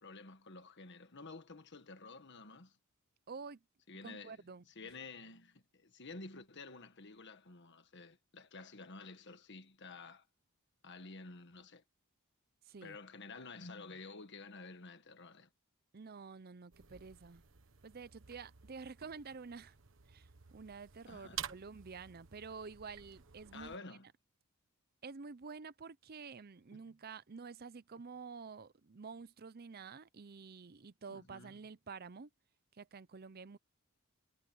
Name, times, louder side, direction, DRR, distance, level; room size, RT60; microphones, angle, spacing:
voice 1, 0.0-2.8 3.9-4.4 4.7-10.3 10.8-11.8 12.8-15.5 21.1-21.4 23.5-24.1 26.7-26.8 31.1-31.5, left 3 dB, 50° left, 1.6 m, -51 dB
voice 2, 3.3-3.6 4.0-4.9 12.6-13.0 15.9-17.4 17.8-19.8 20.1-23.8 25.0-32.3 32.7-33.6, right 5 dB, 45° right, 0.6 m, -49 dB
sound 1, 16.7-23.8, right 9 dB, 60° right, 1.4 m, -51 dB
head